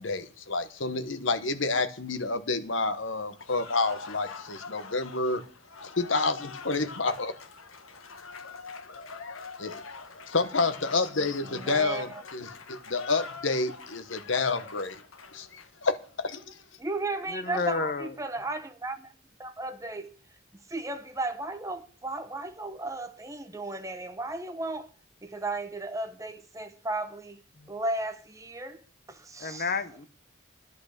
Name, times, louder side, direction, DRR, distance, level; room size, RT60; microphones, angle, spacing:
voice 1, 0.0-5.4 5.8-7.3 9.6-9.8 10.3-15.0 15.3-16.6, left 3 dB, 65° left, 1.2 m, -29 dB
Cheering / Applause, 3.4-16.0, left 4 dB, 80° left, 1.4 m, -44 dB
voice 2, 11.4-12.2 16.8-19.1 19.4-20.2 20.5-24.9 25.2-27.4 27.7-29.7, right 2 dB, 15° right, 0.9 m, -35 dB
voice 3, 17.3-18.1 27.6-27.7 29.4-30.1, left 4 dB, 45° left, 1.0 m, -31 dB
11.0 x 8.7 x 6.6 m
head